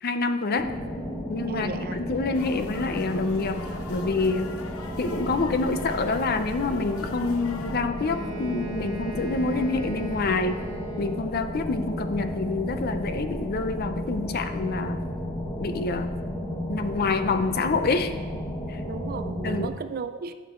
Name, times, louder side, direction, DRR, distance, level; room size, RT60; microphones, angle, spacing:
voice 1, 0.0-0.7 1.3-3.6 3.9-4.5 5.0-10.6 11.0-15.0 15.6-16.2 16.7-18.1 18.7-18.8 19.4-19.7, left 3 dB, 45° left, 9 dB, 0.5 m, -27 dB
sound 1, 0.6-19.7, equal, 15° left, 1.1 m, -33 dB
voice 2, 1.5-2.0 18.9-20.3, right 5 dB, 45° right, 11 dB, 0.4 m, -34 dB
sound 2, 2.3-7.8, left 4 dB, 85° left, 0.8 m, -43 dB
Wind instrument woodwind instrument, 7.9-11.6, right 1 dB, 75° right, 1.0 m, -39 dB
11.0 x 6.7 x 3.8 m, 1.5 s
head